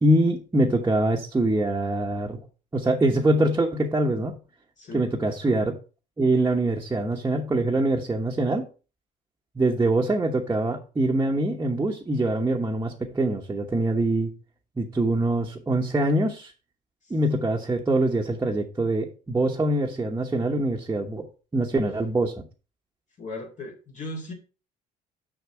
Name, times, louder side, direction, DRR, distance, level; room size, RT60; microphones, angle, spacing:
voice 1, 0.0-2.4 2.7-4.4 4.9-5.8 6.2-8.6 9.6-14.3 14.8-16.5 17.1-21.3 21.5-22.5, right 2 dB, 15° right, -2 dB, 1.0 m, -24 dB
voice 2, 21.5-21.9 23.2-24.3, left 2 dB, 45° left, 0 dB, 1.8 m, -38 dB
6.8 x 5.9 x 4.5 m, 0.34 s
cardioid pair, 110°, 17 cm